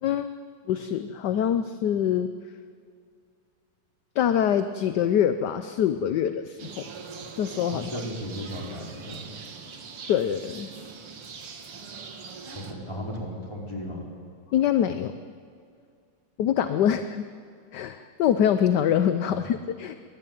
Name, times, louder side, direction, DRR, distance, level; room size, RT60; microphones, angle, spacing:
voice 1, 0.0-0.3 0.7-2.3 4.2-6.9 7.4-7.9 10.1-10.7 14.5-15.2 16.4-17.2 17.7-20.0, left 9 dB, 65° left, 10 dB, 1.2 m, -24 dB
sound 1, 6.6-12.7, right 5 dB, 90° right, 2.8 m, -42 dB
voice 2, 7.7-9.4 12.5-14.1 19.3-19.4, equal, 10° left, -2 dB, 5.0 m, -35 dB
24.5 x 20.0 x 9.3 m, 2.2 s
omnidirectional pair, 2.4 m